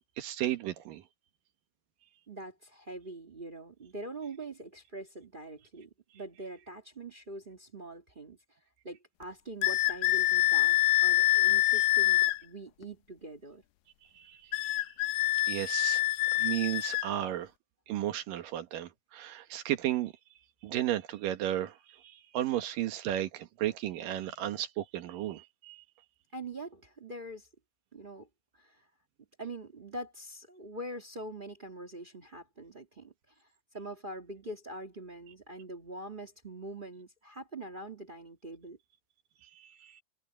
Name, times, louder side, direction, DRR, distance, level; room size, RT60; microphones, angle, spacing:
voice 1, 0.2-1.0 14.2-14.5 15.5-16.0 16.4-17.5 17.9-20.1 20.6-21.8 22.0-25.8 39.8-40.0, right 13 dB, 75° right, 2.9 m, -34 dB
voice 2, 2.3-8.6 8.8-13.6 26.3-27.5 27.9-28.3 28.5-28.9 29.4-33.5 33.7-38.8, right 1 dB, 45° right, 0.6 m, -44 dB
sound 1, 9.6-12.4 14.5-17.1, left 17 dB, 90° left, 2.4 m, -26 dB
omnidirectional pair, 4.0 m